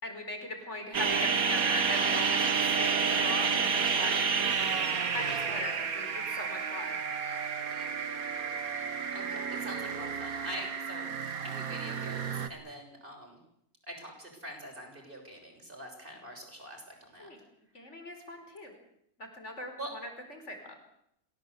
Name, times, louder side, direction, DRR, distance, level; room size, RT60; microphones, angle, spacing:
voice 1, 0.0-4.4 5.1-7.0 17.2-17.4 17.7-18.8 19.2-20.8, left 1 dB, 45° left, 5 dB, 5.2 m, -40 dB
sound 1, 0.9-12.5, right 6 dB, 70° right, 1.9 m, -30 dB
voice 2, 9.1-11.1 11.4-13.4 13.9-17.3 19.8-19.9, right 1 dB, 35° right, 3 dB, 6.9 m, -44 dB
27.5 x 17.0 x 8.4 m, 0.75 s
omnidirectional pair, 1.6 m